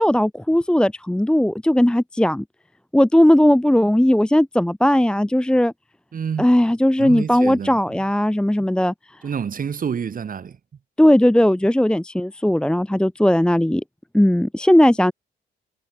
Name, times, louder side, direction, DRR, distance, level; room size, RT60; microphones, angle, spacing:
voice 1, 0.0-2.4 2.9-5.7 6.4-8.9 11.0-13.8 14.1-15.1, left 1 dB, 5° left, 0.8 m, -17 dB
voice 2, 6.1-6.5 7.0-7.8 9.2-10.6, right 7 dB, 45° right, 2.1 m, -28 dB
cardioid pair, 90°, 20 cm